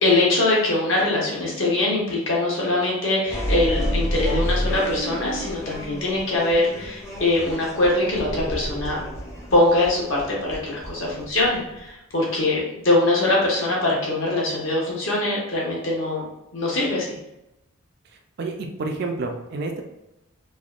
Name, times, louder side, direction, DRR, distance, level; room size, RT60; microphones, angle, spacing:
voice 1, 0.0-9.0 9.5-16.2 16.5-17.1, left 2 dB, 65° left, -4 dB, 0.9 m, -22 dB
sound 1, 3.2-11.9, equal, 15° left, 0.6 m, -29 dB
voice 2, 18.4-19.8, right 3 dB, 50° right, 3 dB, 0.4 m, -29 dB
3.3 x 2.1 x 2.4 m, 0.90 s
head